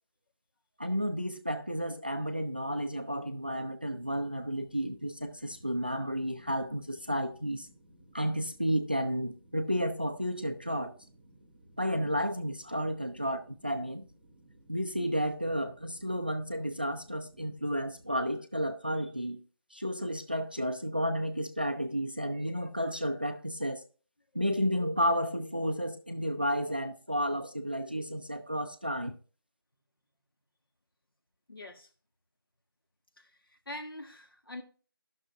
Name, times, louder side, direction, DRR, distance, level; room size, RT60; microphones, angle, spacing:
voice 1, 0.8-7.7 8.1-10.9 11.8-14.0 14.7-19.4 19.7-23.8 24.3-29.2, equal, 25° right, 0.4 m, -32 dB
sound 1, 3.9-18.3, right 1 dB, 5° right, 1.8 m, -60 dB
voice 2, 31.5-31.9 33.2-33.3 33.7-34.6, left 1 dB, 75° left, 1.5 m, -43 dB
12.0 x 6.2 x 2.6 m
figure-of-eight pair, 175°, 12 cm